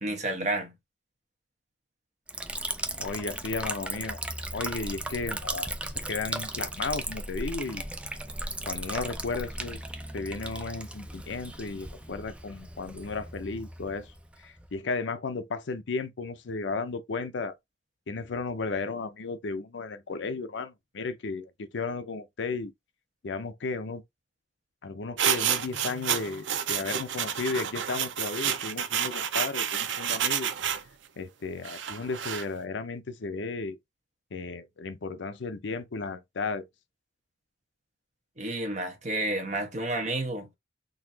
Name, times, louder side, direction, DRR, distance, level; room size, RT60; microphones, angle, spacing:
voice 1, 0.0-0.7 38.4-40.5, right 2 dB, 40° right, 1.1 m, -30 dB
Liquid, 2.3-14.7, right 1 dB, 5° right, 0.4 m, -36 dB
voice 2, 2.9-4.2 4.5-5.7 5.9-7.8 8.6-9.8 10.1-14.1 14.4-17.6 18.1-22.7 23.2-24.0 24.8-30.5 31.2-33.8 34.3-36.7, left 4 dB, 70° left, 0.6 m, -34 dB
sound 1, 25.2-30.8 31.6-32.4, right 9 dB, 75° right, 0.5 m, -29 dB
4.0 x 2.8 x 2.7 m
head